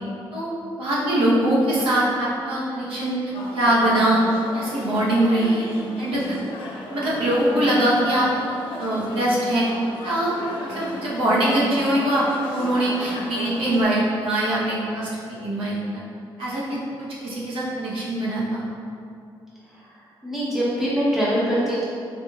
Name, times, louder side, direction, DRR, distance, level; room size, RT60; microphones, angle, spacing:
voice 1, 0.8-3.2 3.5-4.2 4.5-5.7 6.0-6.3 6.9-8.3 8.8-9.6 10.0-10.3 10.6-16.0 16.4-16.8 17.2-18.6, right 1 dB, 70° right, -7 dB, 0.8 m, -22 dB
sound 1, 3.3-13.8, left 1 dB, 80° left, 0.6 m, -35 dB
voice 2, 20.2-21.9, equal, 5° right, -8 dB, 0.8 m, -23 dB
3.9 x 3.2 x 2.3 m, 2.5 s
cardioid pair, 135°, 9 cm